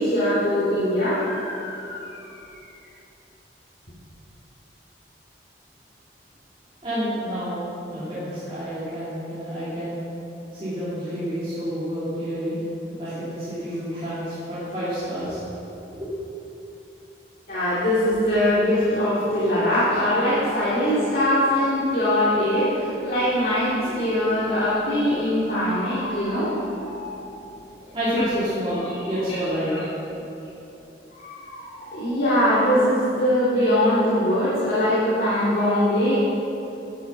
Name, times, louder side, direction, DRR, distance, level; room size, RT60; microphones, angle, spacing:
voice 1, 0.0-2.1 17.5-27.1 28.2-28.3 28.8-28.9 29.3-29.4 31.2-36.3, left 1 dB, 55° left, -11 dB, 2.2 m, -22 dB
voice 2, 6.8-7.6 7.9-10.0 10.5-12.6 12.9-15.4 15.9-16.1 27.9-29.7, equal, 30° right, -13 dB, 2.6 m, -29 dB
9.8 x 7.8 x 6.0 m, 2.9 s
head